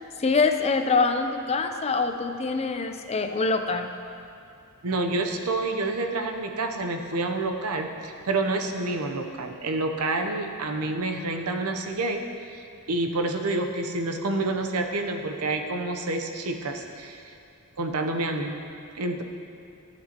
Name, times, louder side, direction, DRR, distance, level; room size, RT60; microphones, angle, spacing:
voice 1, 0.2-3.9, left 4 dB, 30° left, 6 dB, 0.4 m, -24 dB
voice 2, 4.8-12.3 12.5-17.3 17.8-18.5 18.9-19.2, right 2 dB, 80° right, 4 dB, 0.7 m, -28 dB
14.5 x 8.0 x 2.9 m, 2.5 s
head